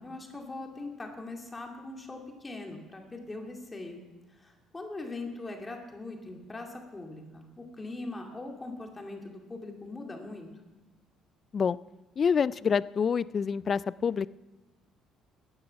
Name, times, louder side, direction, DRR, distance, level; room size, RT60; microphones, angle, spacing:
voice 1, 0.0-4.0 4.3-10.5, left 2 dB, 20° left, 2 dB, 2.3 m, -41 dB
voice 2, 12.2-14.3, left 6 dB, 40° left, 19 dB, 0.3 m, -27 dB
13.5 x 9.5 x 5.8 m, 1.1 s
cardioid pair, 90°, 0 cm